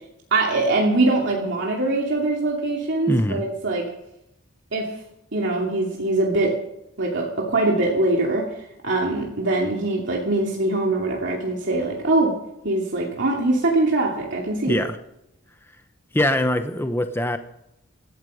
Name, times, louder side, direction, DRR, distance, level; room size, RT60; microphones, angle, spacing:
voice 1, 0.3-3.9 4.7-4.9 5.3-6.6 7.0-8.5 8.8-12.3 12.6-14.8, right 2 dB, 60° right, -1 dB, 2.6 m, -22 dB
voice 2, 3.1-3.4 14.7-15.0 16.1-17.4, left 1 dB, 10° left, 8 dB, 0.8 m, -22 dB
17.0 x 14.0 x 5.0 m, 0.83 s
head